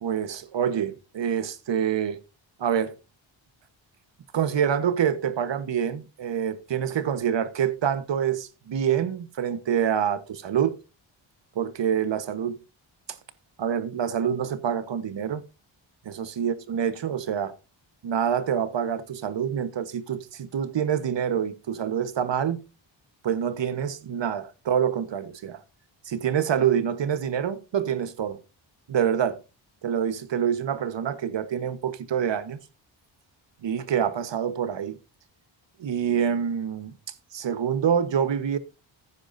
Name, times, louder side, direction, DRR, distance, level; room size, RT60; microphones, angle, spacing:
voice 1, 0.0-2.2 2.6-3.0 4.3-10.8 11.5-12.6 13.1-13.2 13.6-15.4 16.0-17.6 18.0-22.6 23.2-25.6 26.0-28.4 28.9-29.4 29.8-32.6 33.6-35.0 35.8-36.9 37.3-38.6, right 8 dB, 65° right, 1.3 m, -26 dB
15.0 x 9.8 x 2.7 m
cardioid pair, 90°, 47 cm